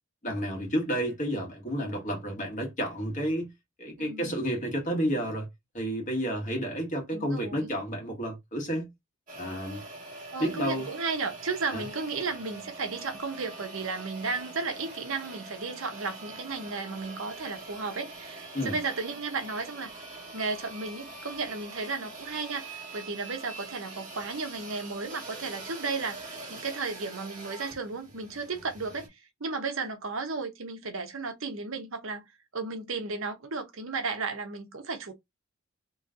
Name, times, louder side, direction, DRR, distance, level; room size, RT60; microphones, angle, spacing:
voice 1, 0.2-3.5 3.8-5.5 5.7-8.9 9.3-9.8 10.4-10.9 11.7-11.8 18.5-18.8, equal, 35° left, 1.6 m, -31 dB
voice 2, 4.0-4.4 7.1-7.7 10.3-19.9 20.3-32.2 32.5-35.1, right 4 dB, 65° right, 0.9 m, -34 dB
sound 1, 9.3-29.1, right 2 dB, 35° right, 1.5 m, -44 dB
3.1 x 3.1 x 3.7 m
head